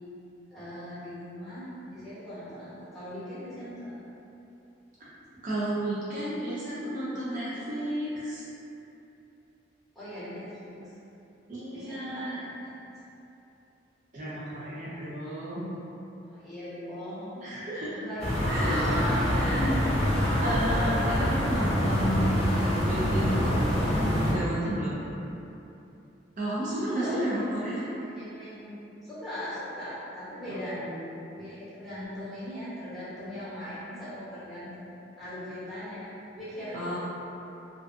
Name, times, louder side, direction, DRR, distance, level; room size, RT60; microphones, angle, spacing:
voice 1, 0.5-1.6 1.9-3.9 9.9-10.8 11.7-12.7 16.2-17.4 17.9-19.1 26.7-27.4 27.8-30.8 31.3-34.9 35.2-37.0, equal, ahead, -14 dB, 0.9 m, -39 dB
voice 2, 5.4-8.4 11.5-12.4 14.1-15.7 17.4-18.0 18.5-18.8 19.3-19.8 20.4-25.1 26.4-27.8 30.5-31.0 36.7-37.0, right 1 dB, 45° right, -9 dB, 0.4 m, -32 dB
sound 1, 18.2-24.3, equal, 35° left, 0.7 m, -25 dB
2.4 x 2.3 x 2.4 m, 2.9 s
head